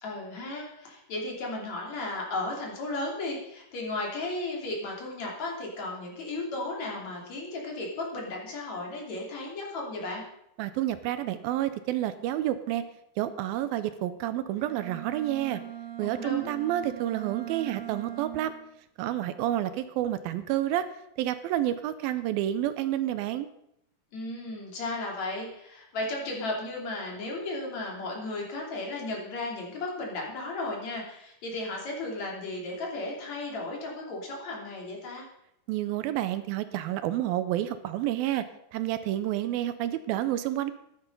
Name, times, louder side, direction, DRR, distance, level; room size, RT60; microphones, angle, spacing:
voice 1, 0.0-10.2 16.0-16.5 24.1-35.3, left 2 dB, 50° left, -1 dB, 3.9 m, -35 dB
voice 2, 10.6-12.8 13.2-15.6 16.0-18.5 19.0-20.9 21.2-23.5 35.7-38.4 38.7-40.7, right 13 dB, 80° right, 12 dB, 2.4 m, -29 dB
Bowed string instrument, 14.6-18.7, right 11 dB, 40° right, 1.7 m, -40 dB
14.5 x 11.5 x 5.3 m, 0.78 s
omnidirectional pair, 4.4 m